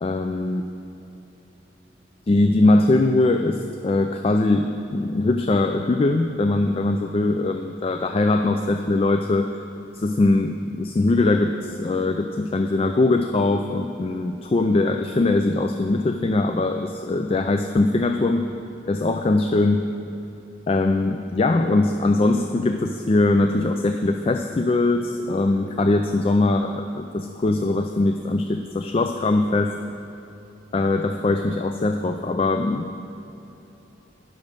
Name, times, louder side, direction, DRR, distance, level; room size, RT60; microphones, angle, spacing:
voice 1, 0.0-0.6 2.3-9.5 9.9-18.5 18.9-19.9 20.7-29.7 30.7-33.0, left 2 dB, 30° left, 6 dB, 0.3 m, -21 dB
10.5 x 6.2 x 6.5 m, 2.9 s
head